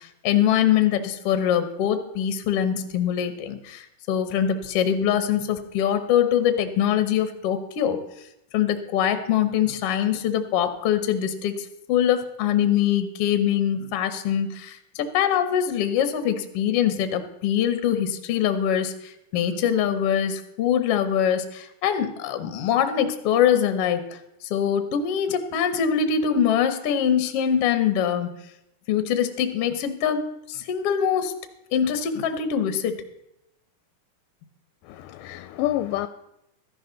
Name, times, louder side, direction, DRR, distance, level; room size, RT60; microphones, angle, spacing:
voice 1, 0.0-8.0 8.5-24.2 24.5-28.3 28.9-31.3 31.7-33.0, left 9 dB, 65° left, 9 dB, 1.6 m, -23 dB
voice 2, 34.9-36.1, left 14 dB, 80° left, 11 dB, 2.1 m, -28 dB
14.0 x 11.0 x 3.9 m, 0.84 s
omnidirectional pair, 3.8 m